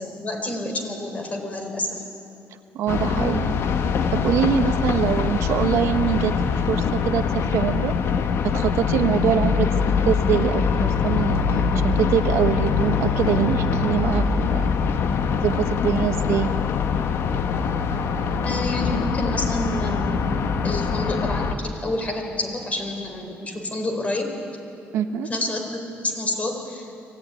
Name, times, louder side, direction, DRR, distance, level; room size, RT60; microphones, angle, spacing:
voice 1, 0.0-2.0 18.4-24.3 25.2-26.9, left 1 dB, 30° left, 3 dB, 4.5 m, -29 dB
voice 2, 2.7-3.7 4.1-8.0 8.4-14.7 15.4-16.5 24.9-25.3, right 8 dB, 75° right, 7 dB, 1.2 m, -24 dB
sound 1, 2.9-21.5, left 6 dB, 60° left, 1.3 m, -23 dB
24.0 x 16.5 x 9.9 m, 2.8 s
cardioid pair, 105°, 5 cm